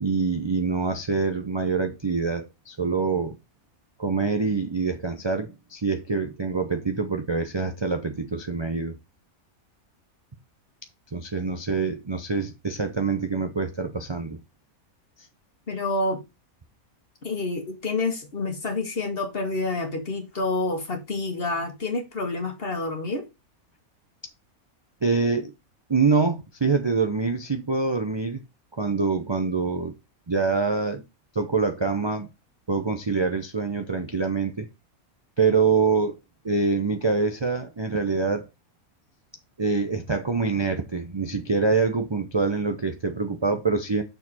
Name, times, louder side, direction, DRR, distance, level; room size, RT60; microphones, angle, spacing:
voice 1, 0.0-3.4 4.0-9.0 11.1-14.4 25.0-25.5 25.9-28.4 28.7-29.9 30.3-31.0 31.3-32.3 32.7-34.7 35.4-36.2 36.4-38.5 39.6-44.0, right 4 dB, 35° right, 0.4 m, -25 dB
voice 2, 15.7-16.2 17.2-23.3, left 2 dB, 40° left, 1.6 m, -28 dB
6.6 x 4.5 x 4.3 m
omnidirectional pair, 1.5 m